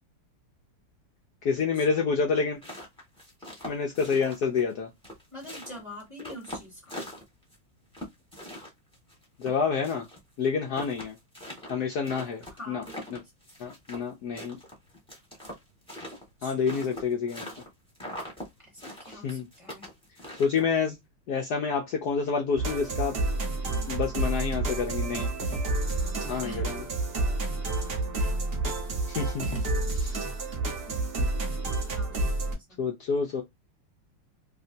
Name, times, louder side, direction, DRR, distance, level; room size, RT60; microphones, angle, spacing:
voice 1, 1.4-2.6 3.7-4.9 9.4-10.1 10.4-11.2 11.7-12.8 13.1-13.2 13.6-14.6 16.4-17.5 19.1-19.5 20.4-21.0 21.3-23.1 23.9-25.3 26.3-26.8 29.1-29.5 29.9-30.2 31.2-31.3 32.8-33.4, left 5 dB, 75° left, 0.9 m, -28 dB
sound 1, 2.4-4.7 5.0-7.6 7.9-10.2 10.5-10.6 10.7-14.1 14.4-17.7 17.9-18.5 18.8-20.8, left 1 dB, 5° left, 1.1 m, -41 dB
voice 2, 5.3-7.0 12.6-13.2 16.4-16.9 18.6-19.9 26.4-26.7 28.2-28.3 29.5-29.9 30.8-31.1 31.9-32.9, left 1 dB, 25° left, 0.8 m, -45 dB
sound 2, 22.6-32.5, right 2 dB, 45° right, 0.8 m, -29 dB
3.2 x 2.8 x 2.6 m
omnidirectional pair, 2.4 m